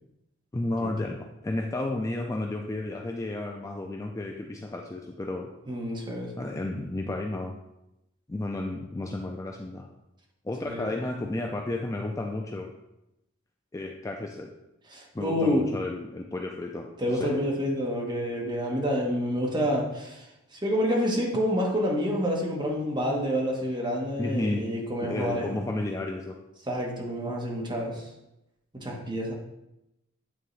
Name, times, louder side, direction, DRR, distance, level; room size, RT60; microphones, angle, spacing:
voice 1, 0.5-5.5 6.4-7.6 8.3-9.9 10.4-12.7 13.7-14.5 15.1-16.9 17.1-17.4 24.2-24.6 25.0-26.3, left 2 dB, 15° left, 1 dB, 0.4 m, -32 dB
voice 2, 5.7-6.5 10.7-10.9 14.9-15.6 17.0-20.3 20.5-25.7 26.7-28.0 28.7-29.3, equal, 20° right, -2 dB, 1.2 m, -28 dB
9.1 x 3.8 x 3.2 m, 0.89 s
head